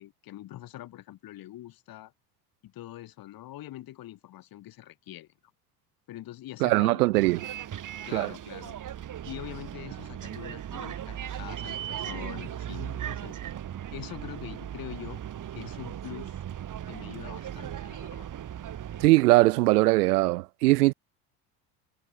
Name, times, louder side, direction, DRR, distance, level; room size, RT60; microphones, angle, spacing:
voice 1, 0.0-2.1 2.6-5.3 6.1-7.0 8.0-8.8 9.2-13.4 13.9-15.2 15.5-16.4 16.9-18.3, left 14 dB, 45° left, 2.7 m, -43 dB
voice 2, 6.6-7.5 8.1-8.3 19.0-20.9, right 20 dB, 70° right, 0.5 m, -21 dB
Bus, 7.1-19.1, right 10 dB, 40° right, 4.1 m, -38 dB
figure-of-eight pair, 65°, 49 cm